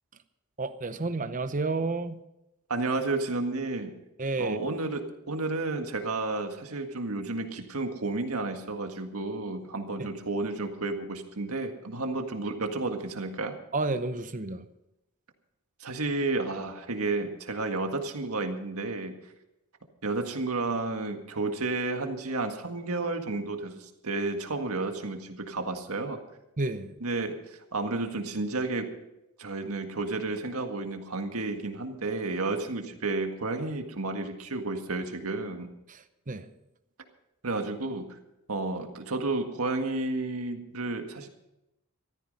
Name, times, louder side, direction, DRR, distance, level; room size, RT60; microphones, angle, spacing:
voice 1, 0.6-2.2 4.2-4.6 10.0-10.1 13.7-14.7 26.6-26.9 35.9-36.5, right 3 dB, 35° right, 11 dB, 0.8 m, -31 dB
voice 2, 2.7-4.0 4.4-13.5 15.8-19.1 20.0-26.2 27.0-28.9 29.4-35.7 37.4-38.2 38.5-41.3, right 3 dB, 75° right, 5 dB, 1.8 m, -31 dB
14.5 x 13.5 x 5.3 m, 0.90 s
head